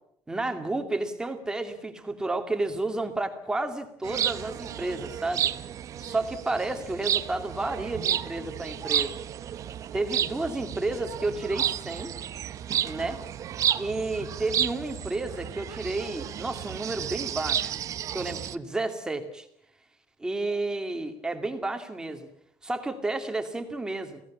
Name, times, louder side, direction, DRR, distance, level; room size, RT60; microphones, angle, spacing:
voice 1, 0.3-5.5 6.0-9.2 9.9-12.1 12.8-13.2 13.8-17.7 18.1-19.5 20.2-22.3 22.6-24.2, right 2 dB, 10° right, 6 dB, 2.5 m, -31 dB
sound 1, 4.0-18.6, right 10 dB, 35° right, 0.9 m, -31 dB
28.5 x 18.0 x 7.3 m, 0.73 s
cardioid pair, 175°, 9 cm